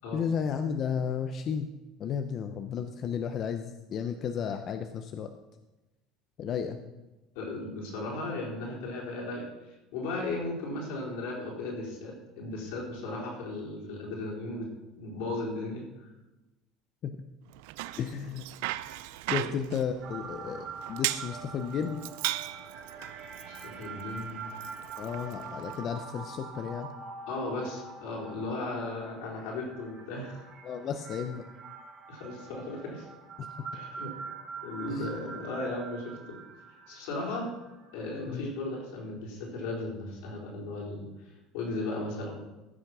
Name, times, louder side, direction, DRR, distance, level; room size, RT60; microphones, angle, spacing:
voice 1, 0.1-1.7 2.0-5.3 6.4-6.8 17.0-17.1 18.0-18.5 19.3-22.0 25.0-26.9 30.6-31.4 33.4-33.5 34.9-35.1 38.3-38.5, left 7 dB, 35° left, 7 dB, 0.6 m, -33 dB
voice 2, 7.3-14.7 14.9-16.0 19.4-19.8 23.6-24.5 27.3-30.5 32.1-33.1 33.7-34.1 34.6-36.4 36.9-37.5 37.9-42.3, left 2 dB, 80° left, -2 dB, 4.2 m, -36 dB
Bicycle, 17.5-25.8, right 16 dB, 80° right, 0.5 m, -38 dB
sound 1, 20.0-38.3, right 5 dB, 45° right, 4.8 m, -44 dB
15.0 x 6.2 x 6.1 m, 1.1 s
cardioid pair, 160°, 0 cm